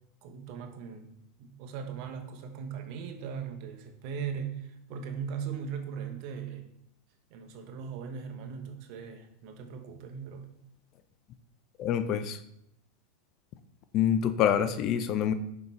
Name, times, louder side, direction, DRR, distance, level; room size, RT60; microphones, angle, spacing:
voice 1, 0.2-6.7 7.3-10.5, right 7 dB, 55° right, 4 dB, 1.0 m, -39 dB
voice 2, 11.8-12.4 13.9-15.3, left 9 dB, 50° left, 11 dB, 0.5 m, -26 dB
5.4 x 4.0 x 4.5 m, 0.77 s
hypercardioid pair, 105°, 0 cm